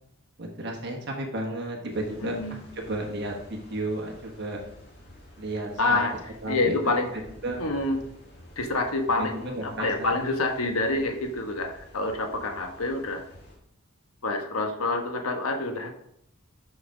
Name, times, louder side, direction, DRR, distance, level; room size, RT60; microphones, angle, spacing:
voice 1, 0.4-4.6 5.4-6.0 6.4-6.9 7.4-8.0 9.2-10.1, right 1 dB, 50° right, 1 dB, 1.3 m, -33 dB
sound 1, 1.9-13.6, left 1 dB, 45° left, 2.6 m, -50 dB
voice 2, 2.2-2.6 2.9-3.0 5.8-6.1 6.5-7.1 7.6-8.1 8.6-13.2 14.2-16.0, left 2 dB, 90° left, 5 dB, 1.2 m, -27 dB
7.0 x 5.9 x 5.2 m, 0.74 s
head